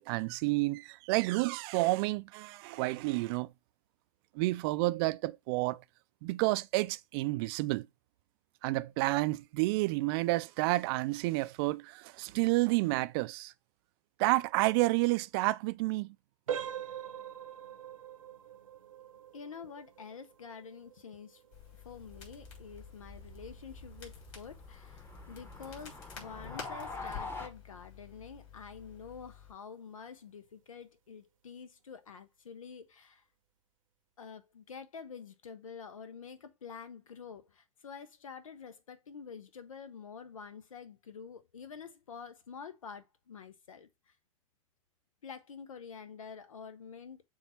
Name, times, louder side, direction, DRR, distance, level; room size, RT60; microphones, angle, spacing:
voice 1, 0.0-3.5 4.3-5.8 6.2-7.9 8.6-13.5 14.2-16.1, right 21 dB, 45° right, 0.4 m, -30 dB
sound 1, 16.5-27.1 27.5-27.7 28.3-28.4 28.9-29.1, right 9 dB, 75° right, 0.8 m, -45 dB
voice 2, 19.3-21.4 21.7-33.2 34.2-44.1 45.2-47.2, left 6 dB, 80° left, 0.7 m, -48 dB
Crackle, 21.5-29.5, left 8 dB, 60° left, 3.2 m, -50 dB
sound 2, 22.0-27.5, left 2 dB, 15° left, 1.0 m, -46 dB
7.1 x 2.4 x 5.5 m
figure-of-eight pair, 95°, 17 cm